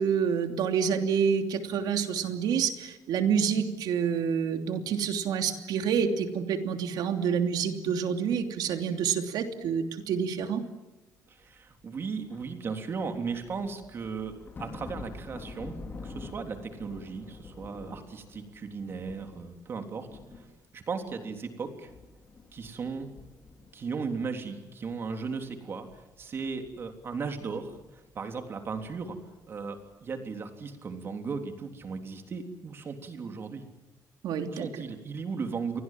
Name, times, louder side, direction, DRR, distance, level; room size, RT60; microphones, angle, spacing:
voice 1, 0.0-10.6 34.2-34.7, right 7 dB, 75° right, 6 dB, 3.0 m, -28 dB
voice 2, 11.3-15.8 16.0-20.1 20.4-20.5 20.7-21.9 22.5-23.1 23.7-25.9 26.2-29.2 29.5-33.6 34.4-35.8, right 5 dB, 35° right, 5 dB, 3.5 m, -36 dB
sound 1, 11.5-11.6 12.0-19.7 20.0-21.5 21.8-24.4 24.7-29.5 29.8-30.1, left 3 dB, 30° left, 3.6 m, -47 dB
29.0 x 23.5 x 7.7 m, 1.1 s
cardioid pair, 180°, 7 cm